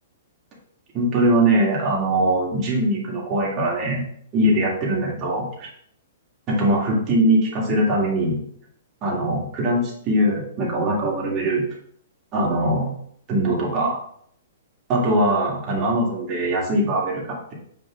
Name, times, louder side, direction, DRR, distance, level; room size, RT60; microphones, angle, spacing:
voice 1, 0.9-4.0 4.3-5.7 6.5-8.4 9.0-11.7 12.3-12.9 13.3-14.0 14.9-17.5, right 1 dB, 20° right, -3 dB, 2.1 m, -21 dB
8.1 x 4.9 x 3.7 m, 0.65 s
hypercardioid pair, 165°, 0 cm